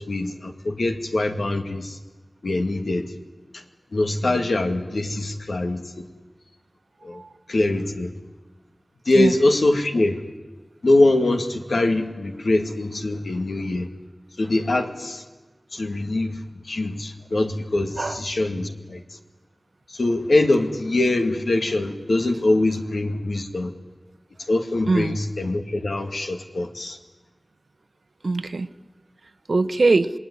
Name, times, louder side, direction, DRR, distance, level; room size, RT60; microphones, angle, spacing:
voice 1, 0.0-2.0 2.4-3.0 3.5-3.6 3.9-6.1 7.0-7.2 7.5-8.1 9.1-10.2 10.8-13.9 14.4-15.2 15.7-19.0 19.9-23.7 24.5-27.0, left 2 dB, 90° left, 4 dB, 2.2 m, -23 dB
voice 2, 24.9-25.2 28.2-28.7 29.5-30.1, right 3 dB, 80° right, 11 dB, 1.0 m, -21 dB
27.0 x 20.0 x 9.9 m, 1.2 s
wide cardioid pair, 55°, 0 cm